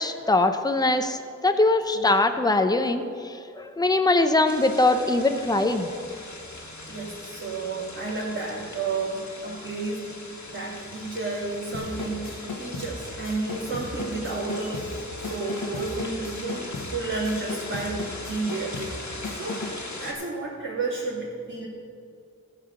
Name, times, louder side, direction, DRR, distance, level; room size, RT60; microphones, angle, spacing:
voice 1, 0.0-6.2, left 2 dB, 10° left, 7 dB, 0.7 m, -22 dB
sound 1, 4.5-20.1, left 2 dB, 60° left, 1.6 m, -40 dB
voice 2, 6.9-10.1 10.5-19.6 20.0-21.7, right 3 dB, 40° right, -11 dB, 3.0 m, -31 dB
sound 2, 11.7-19.9, left 2 dB, 90° left, 1.3 m, -37 dB
15.0 x 5.0 x 6.8 m, 2.5 s
wide cardioid pair, 60°, 32 cm